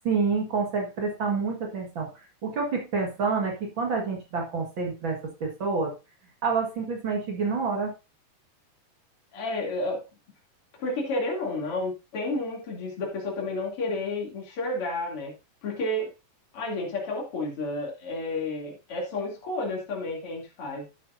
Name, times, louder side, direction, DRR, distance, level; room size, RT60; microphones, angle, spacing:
voice 1, 0.0-5.9 6.4-7.9, right 4 dB, 45° right, 0 dB, 2.1 m, -28 dB
voice 2, 9.3-10.0 10.8-15.3 15.6-16.1 16.5-20.9, left 2 dB, 45° left, -2 dB, 3.5 m, -31 dB
12.0 x 8.3 x 2.7 m, 0.27 s
omnidirectional pair, 3.8 m